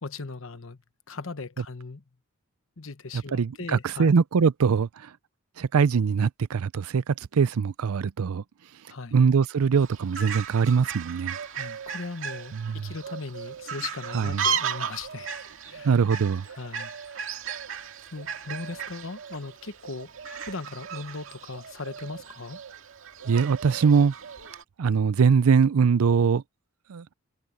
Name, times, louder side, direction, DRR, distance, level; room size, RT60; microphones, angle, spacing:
voice 1, 0.0-0.8 1.1-2.0 2.8-4.1 8.9-9.2 11.5-15.3 15.6-15.9 16.5-17.4 18.1-20.1 20.4-22.6, left 3 dB, 65° left, 1.1 m, -38 dB
voice 2, 3.1-5.1 5.6-8.4 9.1-11.4 12.5-12.9 14.1-14.4 15.8-16.4 23.3-24.1 24.8-26.4 26.9-27.0, right 6 dB, 85° right, 0.5 m, -22 dB
Fowl, 9.8-24.6, right 7 dB, 65° right, 2.1 m, -36 dB
head